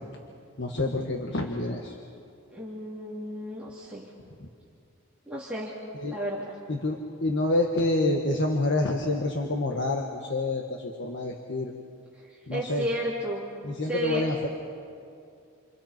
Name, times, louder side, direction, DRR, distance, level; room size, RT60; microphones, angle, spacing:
voice 1, 0.6-1.9 6.0-6.2 6.7-11.7 12.5-12.8 13.6-14.5, left 2 dB, 55° left, 1 dB, 1.6 m, -27 dB
voice 2, 2.5-4.1 5.3-5.8 6.0-6.6 12.1-13.4 13.8-14.2, equal, 5° right, -7 dB, 3.1 m, -33 dB
29.5 x 29.0 x 4.5 m, 2.5 s
head